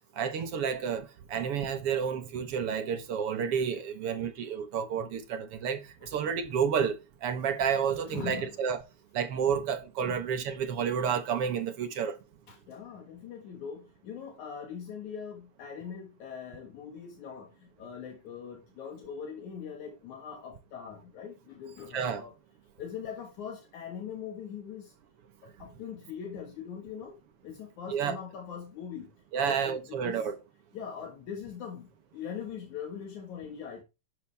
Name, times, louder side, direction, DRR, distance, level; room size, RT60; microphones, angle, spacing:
voice 1, 0.1-8.8 9.1-12.2 21.9-22.2 27.9-28.2 29.3-30.4, right 7 dB, 60° right, 1.7 m, -30 dB
voice 2, 8.1-8.5 10.0-10.2 12.5-17.5 17.8-22.3 22.8-24.9 25.6-27.1 27.4-29.1 29.4-30.3 30.7-31.9 32.1-33.8, left 7 dB, 75° left, 3.0 m, -41 dB
12.5 x 7.2 x 3.4 m
omnidirectional pair, 3.5 m